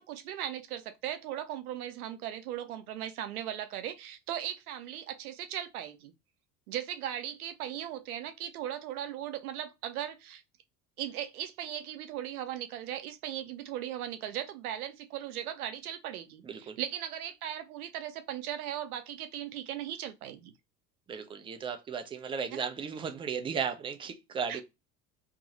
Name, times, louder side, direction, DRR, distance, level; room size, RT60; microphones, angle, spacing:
voice 1, 0.0-6.1 6.7-10.4 11.0-20.5 22.5-22.6 24.5-24.6, right 11 dB, 65° right, 0.7 m, -38 dB
voice 2, 16.4-16.8 21.1-24.6, right 6 dB, 15° right, 0.3 m, -35 dB
2.7 x 2.5 x 2.7 m
figure-of-eight pair, 60°, 47 cm